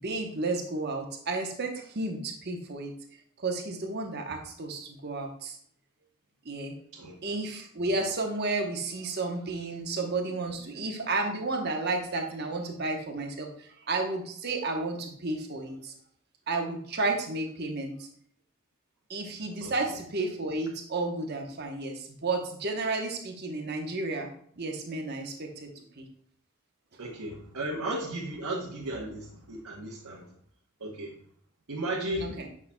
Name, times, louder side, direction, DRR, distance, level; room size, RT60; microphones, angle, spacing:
voice 1, 0.0-2.9 3.4-5.6 6.4-6.8 7.2-15.9 16.5-18.1 19.1-24.3 24.6-26.1 32.2-32.5, right 3 dB, 45° right, 3 dB, 1.0 m, -32 dB
voice 2, 27.0-30.3 30.8-31.1 31.7-32.3, right 1 dB, 80° right, -3 dB, 1.1 m, -35 dB
8.3 x 6.0 x 2.3 m, 0.63 s
head